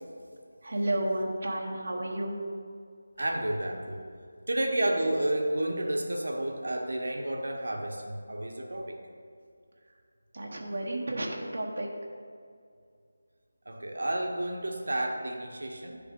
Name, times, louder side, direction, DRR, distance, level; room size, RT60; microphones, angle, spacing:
voice 1, 0.6-2.4 10.3-11.9, right 1 dB, 50° right, -1 dB, 0.8 m, -32 dB
voice 2, 3.2-4.0 4.5-9.0 13.7-16.0, right 1 dB, 80° right, 2 dB, 0.8 m, -31 dB
9.5 x 3.4 x 3.6 m, 2.2 s
figure-of-eight pair, 175°, 0 cm